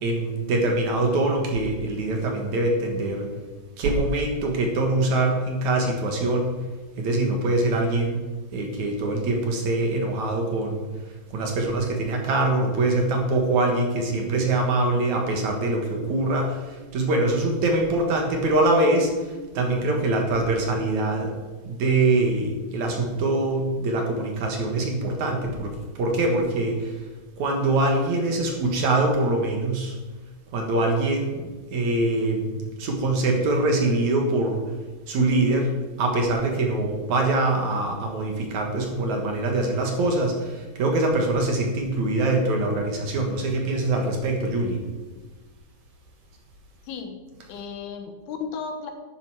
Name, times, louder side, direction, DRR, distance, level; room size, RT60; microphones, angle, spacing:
voice 1, 0.0-3.3 3.8-6.6 7.0-8.3 8.5-10.9 11.3-21.3 21.6-27.0 27.4-30.0 30.5-34.7 35.1-35.7 36.0-44.8, right 2 dB, 60° right, 2 dB, 2.4 m, -24 dB
voice 2, 46.8-47.2 47.5-48.9, left 5 dB, 80° left, 5 dB, 3.2 m, -34 dB
12.0 x 9.5 x 4.8 m, 1.3 s
omnidirectional pair, 4.4 m